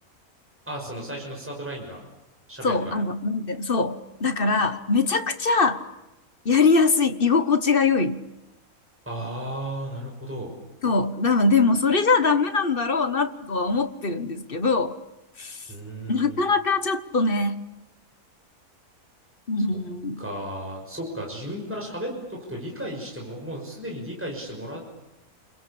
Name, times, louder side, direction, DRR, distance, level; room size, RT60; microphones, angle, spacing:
voice 1, 0.7-2.0 2.5-3.0 9.1-10.5 15.7-16.4 20.2-24.8, right 1 dB, 10° right, 0 dB, 6.0 m, -34 dB
voice 2, 2.6-5.8 6.4-8.2 10.8-14.9 15.4-15.6 16.1-17.6 19.5-20.2, left 4 dB, 40° left, 10 dB, 1.4 m, -22 dB
29.0 x 22.0 x 8.6 m, 0.96 s
omnidirectional pair, 1.6 m